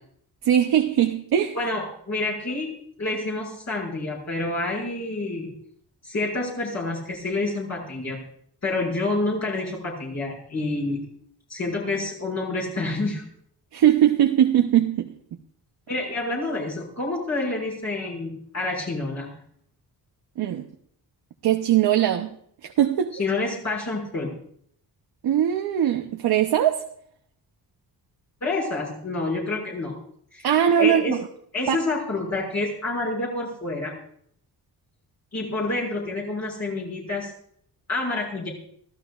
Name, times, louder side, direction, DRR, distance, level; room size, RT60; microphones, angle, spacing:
voice 1, 0.4-1.5 13.7-15.1 20.4-20.6 21.4-22.3 22.6-23.1 25.2-26.8 30.4-31.2 31.7-31.8, right 10 dB, 70° right, 4 dB, 0.9 m, -20 dB
voice 2, 1.5-2.7 3.0-5.5 6.0-8.2 8.6-11.0 11.5-13.2 15.9-19.3 23.2-24.3 28.4-29.9 30.3-30.5 30.8-31.2 31.5-33.9 35.3-37.3 37.9-38.5, left 2 dB, 40° left, -4 dB, 6.0 m, -28 dB
25.0 x 15.0 x 2.5 m, 0.65 s
wide cardioid pair, 150°, 40 cm